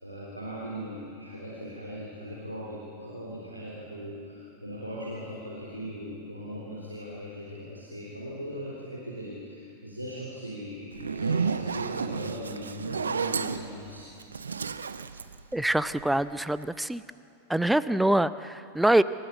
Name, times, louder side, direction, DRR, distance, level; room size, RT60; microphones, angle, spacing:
voice 1, 0.0-14.1, equal, 90° right, -6 dB, 3.7 m, -39 dB
Zipper (clothing), 10.9-16.2, right 5 dB, 70° right, 0.8 m, -32 dB
voice 2, 15.5-17.0 17.5-19.0, right 1 dB, 5° right, 15 dB, 0.6 m, -24 dB
27.5 x 14.0 x 8.3 m, 2.6 s
figure-of-eight pair, 90°, 0 cm